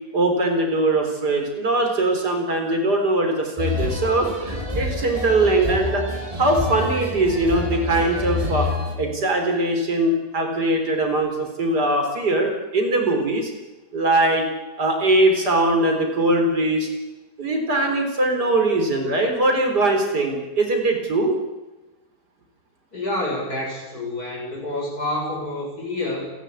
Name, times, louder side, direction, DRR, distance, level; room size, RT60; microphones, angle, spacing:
voice 1, 0.1-6.0 6.4-8.7 9.0-13.5 13.9-14.4 14.8-16.9 17.4-21.4, right 2 dB, 75° right, 3 dB, 4.5 m, -21 dB
sound 1, 3.6-9.0, left 1 dB, 20° right, 3.1 m, -27 dB
voice 2, 22.9-26.3, left 1 dB, 60° left, -1 dB, 7.4 m, -28 dB
28.5 x 11.5 x 8.4 m, 1.1 s
omnidirectional pair, 1.8 m